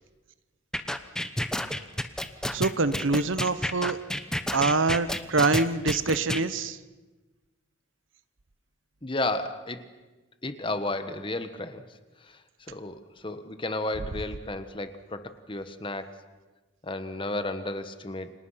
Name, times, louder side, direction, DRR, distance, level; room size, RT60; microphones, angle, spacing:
sound 1, 0.7-6.4, left 1 dB, 5° left, 0.9 m, -30 dB
voice 1, 2.5-4.0 4.5-6.8, right 3 dB, 75° right, 14 dB, 1.0 m, -25 dB
voice 2, 9.0-9.9 10.4-11.9 12.2-16.2 16.8-18.3, left 2 dB, 25° left, 10 dB, 1.4 m, -33 dB
29.5 x 26.0 x 5.8 m, 1.2 s
head